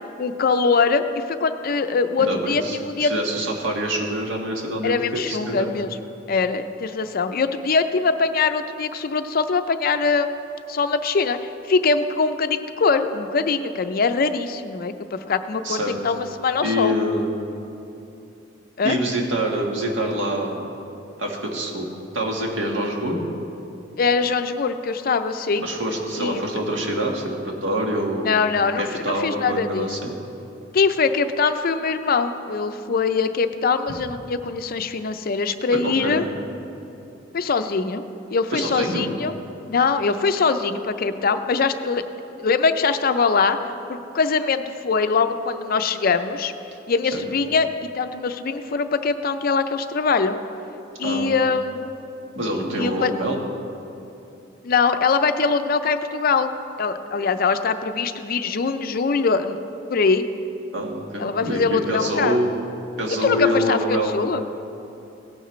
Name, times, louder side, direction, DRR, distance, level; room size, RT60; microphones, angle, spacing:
voice 1, 0.2-3.1 4.8-6.0 6.3-10.4 10.7-11.4 11.7-16.9 18.8-19.0 24.0-25.7 26.2-26.4 28.2-30.1 30.7-36.2 37.3-38.0 38.3-39.3 39.7-42.0 42.4-46.5 46.9-50.4 51.0-51.9 52.8-53.1 54.6-56.5 56.8-59.6 59.9-60.3 61.2-62.4 63.2-64.4, left 4 dB, 50° left, 10 dB, 0.5 m, -22 dB
voice 2, 2.2-5.7 15.6-16.0 16.6-17.3 18.8-20.7 21.2-23.2 25.6-28.3 28.8-30.1 35.8-36.3 38.5-39.1 47.1-47.2 51.0-51.3 52.3-53.4 60.7-62.5 63.0-64.2, equal, 90° right, 1 dB, 1.6 m, -26 dB
17.0 x 9.8 x 3.2 m, 2.9 s
head